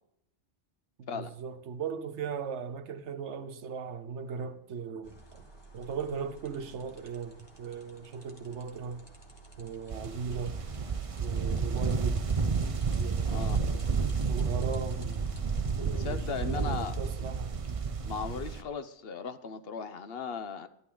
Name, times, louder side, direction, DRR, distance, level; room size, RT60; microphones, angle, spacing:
voice 1, 1.0-5.4 5.7-9.1 9.6-10.6 11.2-12.2 13.0-15.2 15.8-17.5, right 6 dB, 80° right, 1.2 m, -38 dB
sound 1, 5.0-17.0, left 2 dB, 20° left, 1.5 m, -50 dB
sound 2, 9.9-18.6, right 5 dB, 35° right, 0.7 m, -31 dB
voice 2, 13.2-13.7 15.9-17.0 18.0-20.7, left 6 dB, 60° left, 0.9 m, -37 dB
12.5 x 11.5 x 3.8 m
omnidirectional pair, 1.2 m